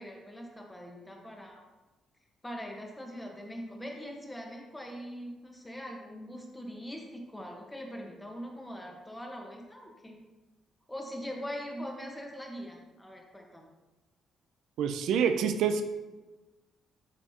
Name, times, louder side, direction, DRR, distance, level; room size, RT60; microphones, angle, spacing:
voice 1, 0.0-1.6 2.4-10.2 10.9-13.7, equal, 10° left, 1 dB, 1.1 m, -42 dB
voice 2, 14.8-15.8, right 7 dB, 80° right, 8 dB, 0.4 m, -26 dB
9.9 x 3.3 x 2.8 m, 1.1 s
cardioid pair, 90°, 0 cm